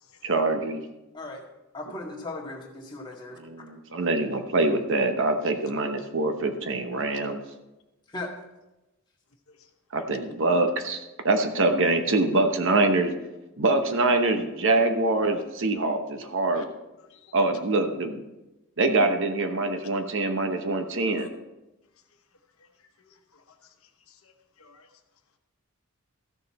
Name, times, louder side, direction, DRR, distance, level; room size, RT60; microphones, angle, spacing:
voice 1, 0.2-0.8 3.4-7.4 9.9-13.1 13.6-16.6 17.3-18.2 18.8-21.3, right 2 dB, 60° right, 6 dB, 0.9 m, -24 dB
voice 2, 1.7-3.4 8.1-8.3, left 2 dB, 20° left, -2 dB, 1.9 m, -37 dB
voice 3, 23.0-23.6 24.1-24.3 24.6-24.9, left 6 dB, 70° left, 5 dB, 1.1 m, -55 dB
14.5 x 6.8 x 4.2 m, 1.0 s
head